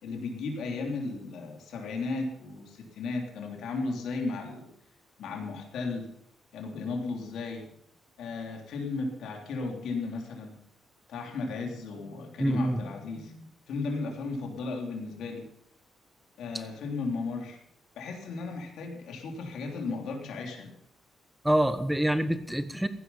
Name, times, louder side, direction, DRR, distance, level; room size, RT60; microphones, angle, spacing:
voice 1, 0.0-4.7 5.2-6.1 6.5-7.7 8.2-10.6 11.1-15.4 16.4-17.6 17.9-20.7, left 3 dB, 90° left, 2 dB, 3.2 m, -35 dB
voice 2, 12.4-12.8 21.4-22.9, right 1 dB, 5° right, 11 dB, 1.1 m, -26 dB
16.0 x 11.5 x 5.6 m, 0.74 s
cardioid pair, 120°, 0 cm